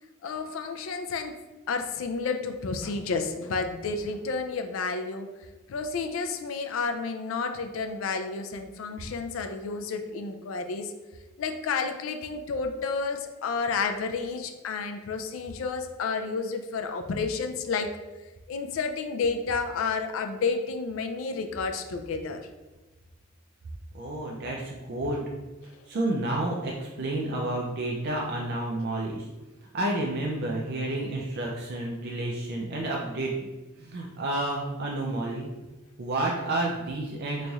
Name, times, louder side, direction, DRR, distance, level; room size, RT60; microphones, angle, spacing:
voice 1, 0.2-1.4 1.7-5.3 5.7-10.9 11.4-17.9 18.5-22.4, left 4 dB, 75° left, 6 dB, 0.4 m, -31 dB
voice 2, 23.9-25.2 25.9-29.3 29.7-33.3 33.8-35.5 36.0-37.5, right 1 dB, 55° right, -1 dB, 0.4 m, -30 dB
4.0 x 3.1 x 2.3 m, 1.2 s
head